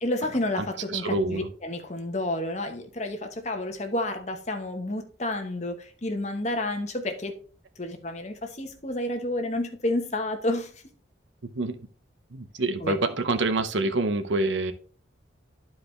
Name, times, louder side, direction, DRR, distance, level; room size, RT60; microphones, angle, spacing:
voice 1, 0.0-7.3 7.8-10.7 12.8-13.0, left 1 dB, 35° left, 1.1 m, -30 dB
voice 2, 0.6-1.5 11.5-11.8 12.3-14.7, right 2 dB, 80° right, 0.8 m, -27 dB
11.5 x 4.7 x 3.2 m
head